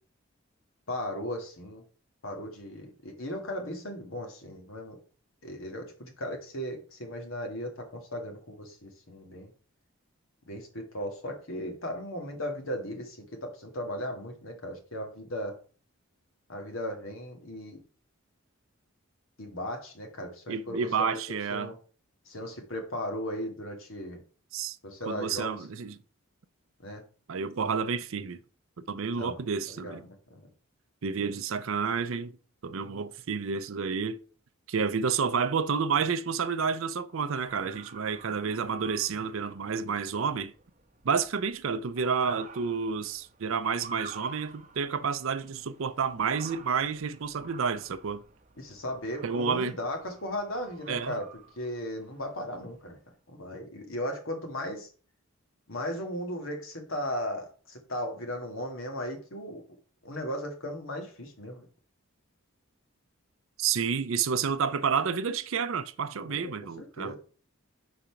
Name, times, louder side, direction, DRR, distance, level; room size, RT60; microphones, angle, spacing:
voice 1, 0.9-1.8 2.2-5.0 5.4-9.5 10.5-15.6 16.5-17.8 19.4-21.2 21.5-21.7 22.3-24.2 24.8-25.7 26.8-27.0 29.2-29.4 29.7-30.5 48.6-51.3 51.6-53.0 53.3-54.9 55.7-59.6 60.0-61.7 66.2-66.5 66.8-67.2, equal, 70° left, 1.8 m, -36 dB
voice 2, 20.5-21.7 24.5-24.8 25.1-25.9 27.3-28.4 28.8-30.0 31.0-32.3 32.6-34.2 34.7-40.5 41.0-48.2 49.2-49.7 50.9-51.2 63.6-67.1, right 6 dB, 70° right, 0.5 m, -30 dB
Motor vehicle (road) / Siren, 37.4-53.0, right 4 dB, 35° right, 0.8 m, -50 dB
5.1 x 4.2 x 5.7 m
head